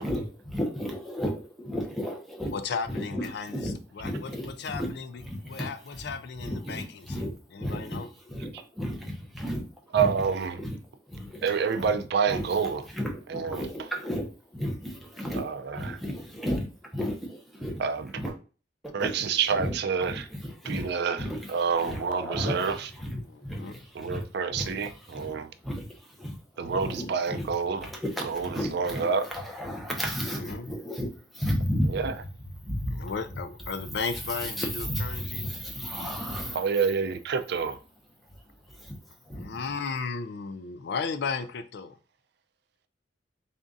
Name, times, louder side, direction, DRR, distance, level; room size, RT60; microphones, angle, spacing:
voice 1, 0.0-2.5 2.9-4.9 5.2-6.0 6.4-9.6 9.9-10.1 10.6-10.8 11.1-11.9 12.3-12.5 12.9-15.5 15.7-16.7 16.9-17.8 18.1-18.3 18.8-19.3 19.6-19.7 20.0-20.9 21.2-21.5 21.8-24.2 24.5-25.4 25.6-27.5 27.8-32.0 32.6-33.1 34.4-36.6 38.8-39.0 39.3-39.5, equal, ahead, 0.8 m, -34 dB
voice 2, 2.5-7.2 7.5-8.1 23.2-23.8 25.3-25.4 30.4-30.7 32.9-35.5 39.3-42.0, left 5 dB, 60° left, 0.4 m, -35 dB
voice 3, 9.9-10.6 11.4-12.8 13.3-13.7 15.3-16.0 17.8-18.1 18.9-20.3 20.6-22.9 23.9-25.5 26.6-27.9 28.2-29.3 31.9-32.1 36.5-37.8, right 6 dB, 60° right, 0.4 m, -28 dB
3.6 x 2.5 x 3.8 m
head